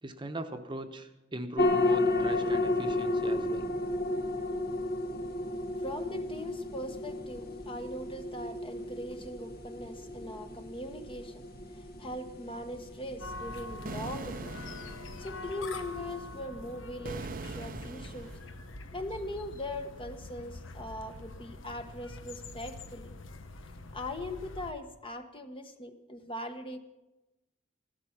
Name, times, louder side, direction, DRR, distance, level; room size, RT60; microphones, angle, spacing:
voice 1, 0.0-3.7, right 1 dB, 25° right, 6 dB, 1.0 m, -39 dB
sound 1, 1.6-16.4, left 2 dB, 55° left, 1.5 m, -33 dB
voice 2, 5.8-11.4 11.7-14.6 15.2-18.3 18.9-23.1 23.9-26.8, left 1 dB, 30° left, 6 dB, 1.1 m, -40 dB
sound 2, 13.2-24.7, left 2 dB, 90° left, 1.0 m, -45 dB
sound 3, 13.9-15.3 17.0-18.5, right 3 dB, 45° right, 0.7 m, -41 dB
16.0 x 13.0 x 5.9 m, 1.0 s
head